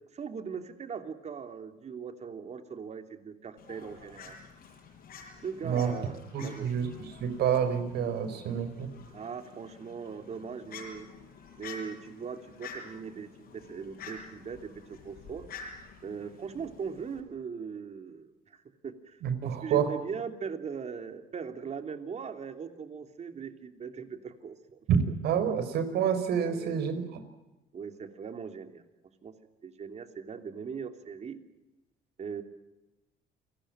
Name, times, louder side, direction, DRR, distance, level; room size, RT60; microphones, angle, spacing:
voice 1, 0.1-4.4 5.4-6.7 9.1-11.1 11.6-15.5 16.0-24.8 26.5-26.8 27.7-28.8 29.2-29.3 29.6-31.4 32.2-32.4, right 6 dB, 40° right, 7 dB, 3.0 m, -40 dB
Fowl, 3.6-17.2, left 5 dB, 60° left, 7.6 m, -49 dB
voice 2, 6.3-6.9 7.2-8.9 19.2-19.9 24.9-25.0 25.2-27.2, right 8 dB, 75° right, 10 dB, 4.8 m, -28 dB
29.0 x 19.5 x 8.9 m, 1.0 s
cardioid pair, 110°, 17 cm